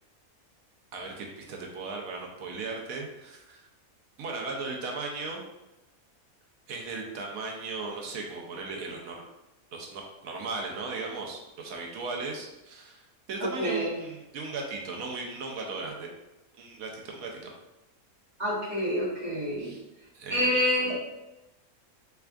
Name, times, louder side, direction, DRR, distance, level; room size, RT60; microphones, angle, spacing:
voice 1, 0.9-3.6 4.2-5.4 6.7-9.2 9.7-13.0 13.3-16.1 16.6-17.5 19.6-19.8 20.1-20.5, right 3 dB, 75° right, 0 dB, 1.1 m, -37 dB
voice 2, 13.4-13.9 18.4-19.7 20.3-20.9, equal, 30° right, -10 dB, 1.7 m, -27 dB
3.5 x 3.4 x 2.3 m, 0.99 s
omnidirectional pair, 1.5 m